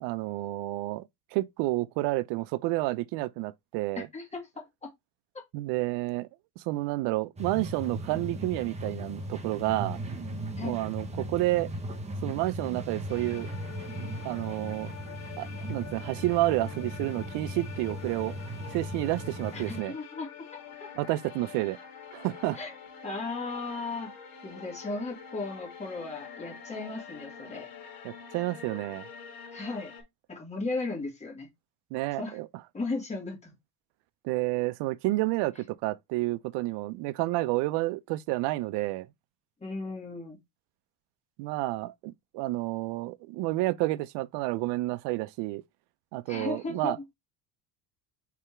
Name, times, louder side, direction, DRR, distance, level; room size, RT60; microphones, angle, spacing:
voice 1, 0.0-4.1 5.5-6.3 6.6-10.0 10.6-11.7 12.2-13.5 14.2-14.9 15.4-18.3 18.7-19.9 21.0-21.8 22.1-22.6 28.0-29.1 31.9-32.5 34.2-39.1 41.4-45.6 46.1-47.0, right 18 dB, 75° right, 0.5 m, -30 dB
voice 2, 4.0-4.6 5.3-5.4 10.6-10.8 19.5-20.3 20.8-20.9 22.5-22.7 23.0-24.1 24.4-27.7 29.5-29.9 30.3-31.5 32.2-32.4 32.7-33.5 39.6-40.4 46.3-47.0, left 3 dB, 15° left, 1.7 m, -36 dB
sound 1, 7.4-19.8, right 1 dB, 15° right, 0.7 m, -38 dB
sound 2, 13.1-30.0, left 7 dB, 55° left, 1.9 m, -46 dB
3.6 x 3.3 x 4.3 m
cardioid pair, 140°, 42 cm